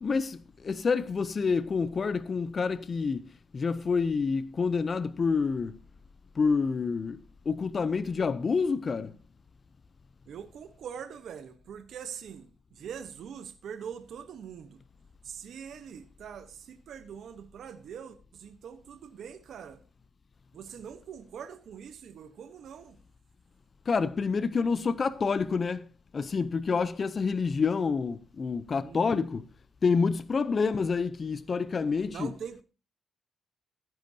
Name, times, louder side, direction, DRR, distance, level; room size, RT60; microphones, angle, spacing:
voice 1, 0.0-3.2 3.5-5.7 6.4-7.2 7.5-9.1 23.9-25.8 26.1-29.4 29.8-32.3, left 5 dB, 40° left, 0.5 m, -28 dB
voice 2, 10.3-14.8 15.2-19.8 20.5-23.0 28.8-29.1 32.1-32.6, right 7 dB, 75° right, 1.0 m, -43 dB
14.5 x 10.5 x 2.8 m
cardioid pair, 105°, 0 cm